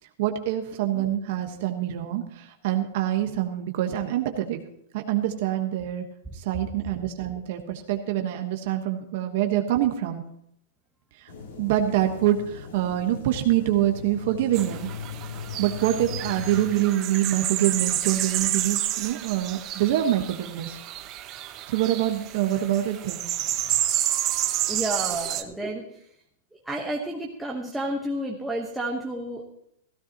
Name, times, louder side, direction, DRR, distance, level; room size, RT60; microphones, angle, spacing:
voice 1, 0.2-4.6 4.9-6.0 6.3-10.2 11.2-11.3 11.6-14.9 15.6-20.8 21.7-23.3, right 12 dB, 55° right, 5 dB, 1.3 m, -25 dB
sound 1, 11.3-16.6, left 6 dB, 75° left, 4.5 m, -38 dB
sound 2, 14.5-25.4, right 13 dB, 30° right, 0.8 m, -30 dB
voice 2, 24.7-26.1 26.6-29.5, right 1 dB, 5° right, -2 dB, 1.2 m, -31 dB
16.0 x 14.5 x 3.0 m, 0.73 s
supercardioid pair, 155°, 0 cm